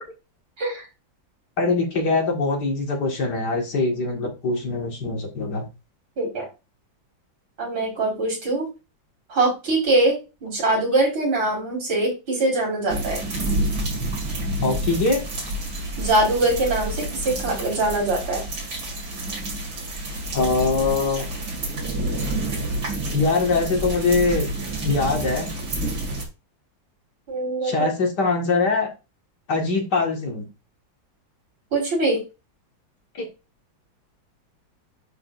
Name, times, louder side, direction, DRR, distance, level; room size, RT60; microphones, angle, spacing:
voice 1, 1.6-5.7 14.6-15.2 20.3-21.3 23.1-24.5 24.8-25.5 27.6-28.9 29.5-30.5 33.1-33.3, left 3 dB, 60° left, 1 dB, 2.4 m, -23 dB
voice 2, 7.6-8.7 9.3-13.2 16.0-18.4 27.3-27.9 31.7-32.2, right 2 dB, 85° right, -2 dB, 5.4 m, -23 dB
sound 1, 12.9-26.2, right 1 dB, 60° right, 2.9 m, -28 dB
10.5 x 5.1 x 2.6 m, 0.27 s
omnidirectional pair, 2.1 m